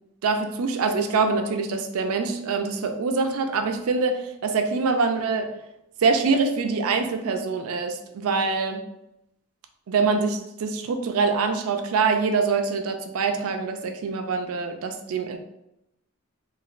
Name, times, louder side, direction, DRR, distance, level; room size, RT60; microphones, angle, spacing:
voice 1, 0.2-5.5 6.0-8.8 9.9-15.4, right 4 dB, 85° right, 6 dB, 0.4 m, -24 dB
3.2 x 2.4 x 2.4 m, 0.84 s
head